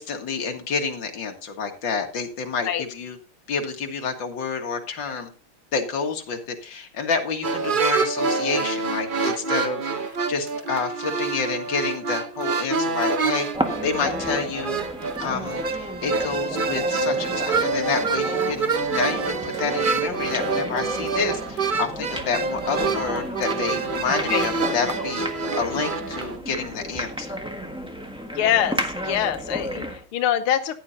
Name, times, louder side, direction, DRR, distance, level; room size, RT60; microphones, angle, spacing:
voice 1, 0.0-3.2 3.5-5.3 5.7-13.5 13.8-14.8 15.2-25.3 25.6-27.4, left 5 dB, 60° left, 3 dB, 2.4 m, -29 dB
sound 1, 7.4-26.4, right 4 dB, 75° right, 0.4 m, -26 dB
sound 2, 13.5-30.0, equal, 5° right, 1.2 m, -33 dB
voice 2, 28.4-30.7, left 10 dB, 90° left, 8 dB, 1.7 m, -24 dB
15.0 x 10.0 x 2.7 m, 0.33 s
omnidirectional pair, 2.3 m